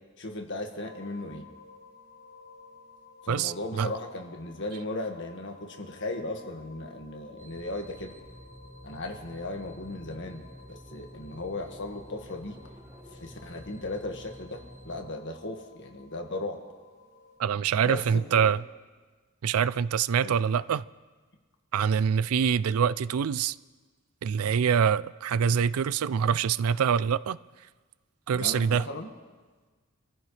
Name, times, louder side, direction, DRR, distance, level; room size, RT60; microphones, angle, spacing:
voice 1, 0.2-1.5 3.2-8.1 8.8-12.6 13.1-16.6 17.8-18.5 20.2-20.4 28.3-29.1, left 2 dB, 55° left, 1.7 m, -37 dB
sound 1, 0.8-17.4, left 3 dB, 20° left, 5.2 m, -54 dB
voice 2, 3.3-3.9 17.4-18.6 19.4-20.8 21.7-23.6 24.2-27.4 28.3-28.9, right 7 dB, 85° right, 0.4 m, -25 dB
sound 2, 7.4-15.1, equal, 10° right, 1.1 m, -49 dB
26.0 x 14.5 x 3.3 m
head